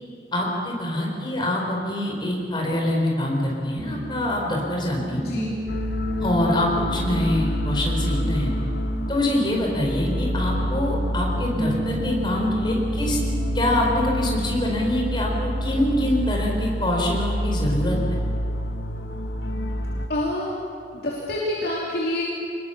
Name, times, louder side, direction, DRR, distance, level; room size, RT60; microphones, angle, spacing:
voice 1, 0.3-5.3 6.2-8.5 9.1-13.2 13.5-18.0, left 1 dB, 25° left, -1 dB, 4.8 m, -25 dB
Piano, 3.8-16.3, equal, 25° right, 1.5 m, -33 dB
voice 2, 5.2-5.6 20.1-20.5 20.9-22.2, left 1 dB, 60° left, -5 dB, 3.3 m, -27 dB
sound 1, 5.7-20.1, equal, 75° left, 1.5 m, -28 dB
26.0 x 21.0 x 7.1 m, 2.6 s
head